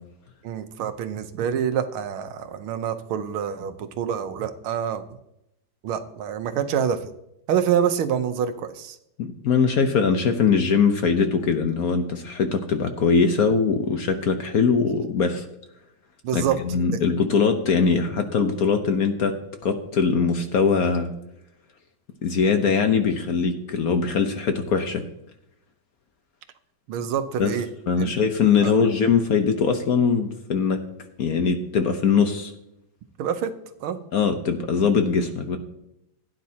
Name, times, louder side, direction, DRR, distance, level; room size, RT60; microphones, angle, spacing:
voice 1, 0.4-5.0 5.8-7.0 7.5-9.0 16.2-16.6 26.9-27.7 28.0-28.1 28.6-28.7 33.2-34.0, right 8 dB, 90° right, 10 dB, 1.7 m, -26 dB
voice 2, 9.2-15.5 16.3-19.3 19.6-21.1 22.2-25.0 27.4-27.6 27.9-30.8 31.2-32.5 34.1-35.6, left 5 dB, 55° left, 6 dB, 1.1 m, -21 dB
16.0 x 9.7 x 2.8 m, 0.83 s
omnidirectional pair, 2.2 m